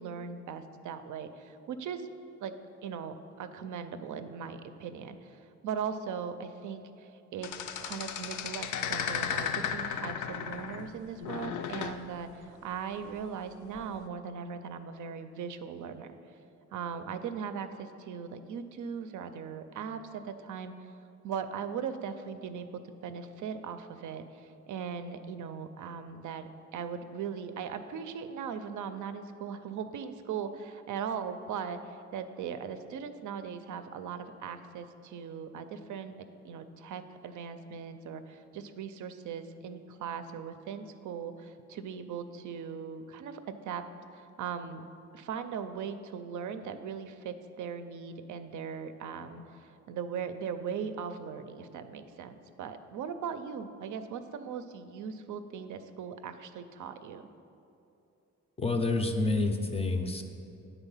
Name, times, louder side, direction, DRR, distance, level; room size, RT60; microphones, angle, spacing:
voice 1, 0.0-2.1 2.4-2.5 2.8-5.4 5.6-7.5 7.8-16.2 16.7-20.7 21.2-22.7 23.0-43.8 44.1-44.8 45.1-57.2, right 7 dB, 80° right, 9 dB, 0.5 m, -39 dB
sound 1, 7.4-10.9 11.2-12.0 13.7-14.0, left 7 dB, 80° left, 0.5 m, -35 dB
voice 2, 58.6-60.2, left 2 dB, 20° left, 5 dB, 0.4 m, -28 dB
8.9 x 4.1 x 5.5 m, 2.7 s
cardioid pair, 140°, 30 cm